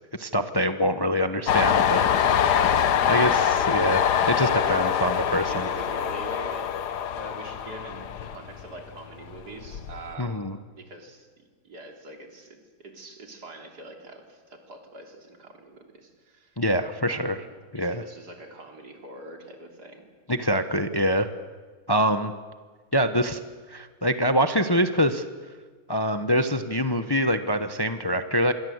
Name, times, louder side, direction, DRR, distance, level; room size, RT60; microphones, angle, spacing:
voice 1, 0.2-2.0 3.1-5.7 10.2-10.6 16.6-17.4 17.7-18.0 20.3-21.3 21.9-22.3 22.9-23.4 23.7-25.2 25.9-28.5, equal, 20° left, 9 dB, 0.7 m, -24 dB
Train, 1.5-8.9 9.3-10.1, left 8 dB, 85° left, 1.6 m, -24 dB
voice 2, 5.3-6.7 7.1-10.4 10.8-16.6 17.1-17.5 17.7-20.1, right 2 dB, 80° right, 3 dB, 3.7 m, -43 dB
26.5 x 22.5 x 8.0 m, 1.5 s
omnidirectional pair, 1.7 m